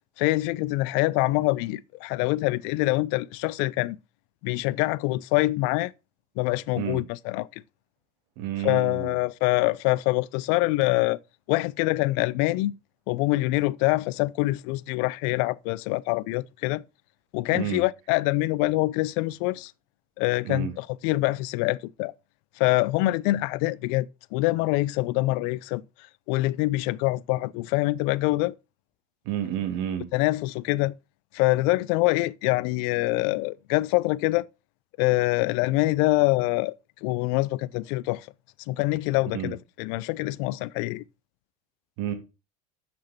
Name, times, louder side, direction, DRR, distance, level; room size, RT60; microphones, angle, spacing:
voice 1, 0.2-4.0 4.4-5.9 6.4-7.6 8.6-11.2 11.5-12.7 13.1-16.8 17.3-19.7 20.2-22.1 22.6-25.8 26.3-28.5 30.1-30.9 31.3-34.5 35.0-36.7 37.0-38.3 38.7-41.0, left 20 dB, 65° left, 0.5 m, -25 dB
voice 2, 8.4-9.1 17.5-17.8 20.4-20.7 29.2-30.1 39.3-39.6 42.0-42.1, right 10 dB, 65° right, 2.5 m, -30 dB
6.3 x 6.0 x 5.8 m
supercardioid pair, 95°, 20 cm